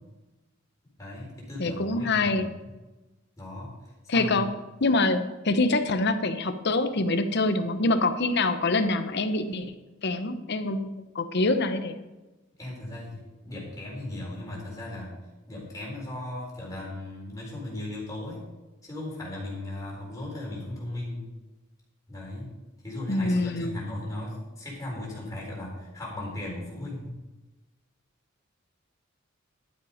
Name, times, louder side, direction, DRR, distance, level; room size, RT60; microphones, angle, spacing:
voice 1, 1.0-2.7 3.4-3.7 4.0-4.4 12.6-15.2 15.5-18.4 18.8-21.2 22.1-22.5 22.8-27.1, left 1 dB, 15° left, -4 dB, 4.1 m, -37 dB
voice 2, 1.6-2.5 4.1-4.5 4.8-9.7 10.0-12.1 23.1-23.8, left 2 dB, 55° left, 10 dB, 0.9 m, -25 dB
12.0 x 7.8 x 5.0 m, 1.1 s
head